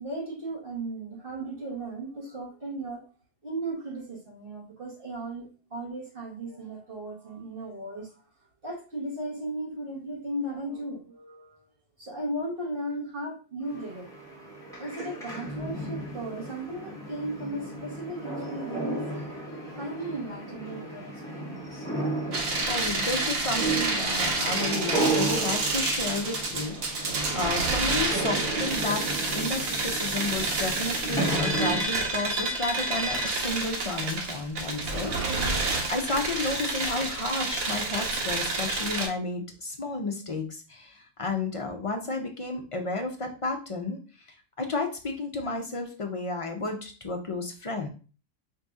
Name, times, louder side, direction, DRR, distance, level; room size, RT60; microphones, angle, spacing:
voice 1, 0.0-3.0 3.4-8.1 8.6-11.6 12.0-14.1 14.4-19.3 19.8-22.1, right 1 dB, 45° right, -5 dB, 1.7 m, -36 dB
sound 1, 13.7-31.8, right 2 dB, 5° left, 1.1 m, -34 dB
sound 2, 22.3-39.1, right 3 dB, 85° right, 1.4 m, -29 dB
voice 2, 22.7-44.3 44.6-47.9, left 3 dB, 40° left, 3 dB, 0.4 m, -32 dB
4.7 x 2.7 x 3.6 m, 0.36 s
omnidirectional pair, 1.4 m